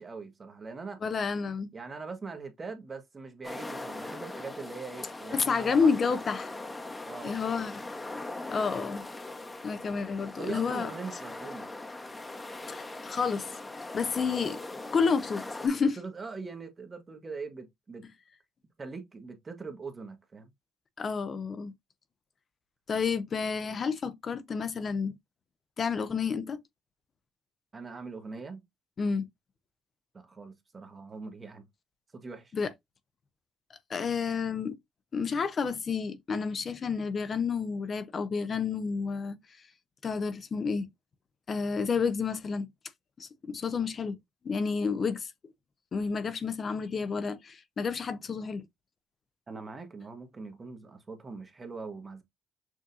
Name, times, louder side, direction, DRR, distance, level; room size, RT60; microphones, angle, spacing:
voice 1, 0.0-1.0 1.7-5.9 7.0-7.4 10.4-11.7 16.0-18.0 18.8-20.5 27.7-28.6 30.1-31.7 32.1-32.5 49.5-52.2, right 4 dB, 35° right, 1.3 m, -42 dB
voice 2, 1.0-1.7 5.3-6.5 7.2-7.8 8.5-9.1 9.6-10.9 12.7-13.6 13.9-14.6 14.9-16.0 21.0-21.7 22.9-25.1 25.8-26.6 29.0-29.2 32.5-32.7 33.9-34.8 35.1-39.4 40.0-40.9 41.5-42.7 43.2-44.2 44.4-45.3 45.9-48.6, left 5 dB, 50° left, 0.7 m, -30 dB
sound 1, 3.4-15.7, left 2 dB, 20° left, 1.0 m, -40 dB
6.2 x 2.7 x 2.5 m
supercardioid pair, 65°, 0 cm